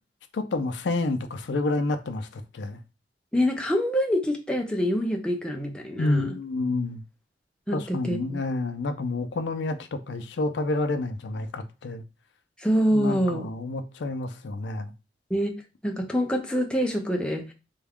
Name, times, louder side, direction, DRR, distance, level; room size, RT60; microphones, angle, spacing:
voice 1, 0.3-2.8 6.0-7.0 7.7-12.0 12.9-14.9, left 2 dB, 85° left, 0.5 m, -29 dB
voice 2, 3.3-6.4 7.7-8.4 12.6-13.5 15.3-15.5 15.8-17.4, equal, 5° left, 0.5 m, -25 dB
3.4 x 2.3 x 3.5 m
head